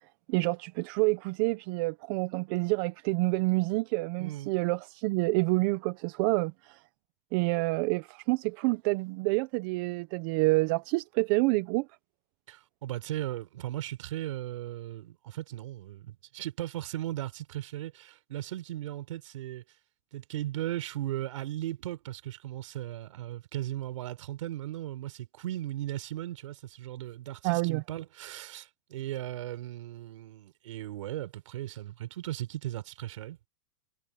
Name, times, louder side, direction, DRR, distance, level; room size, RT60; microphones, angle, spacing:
voice 1, 0.3-6.8 7.3-11.9 27.4-27.8, right 24 dB, 40° right, 0.8 m, -28 dB
voice 2, 4.2-4.5 12.5-19.6 20.1-33.4, right 14 dB, 70° right, 4.2 m, -37 dB
supercardioid pair, 145°, 17 cm